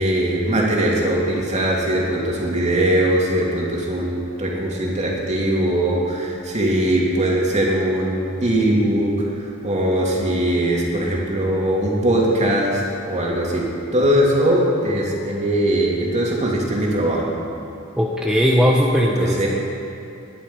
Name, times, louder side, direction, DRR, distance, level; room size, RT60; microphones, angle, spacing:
voice 1, 0.0-9.1 9.6-12.8 13.1-17.3 19.2-19.5, right 1 dB, 35° right, -3 dB, 2.8 m, -20 dB
voice 2, 18.0-19.5, equal, 5° right, -3 dB, 1.1 m, -18 dB
20.5 x 11.0 x 5.6 m, 2.6 s
head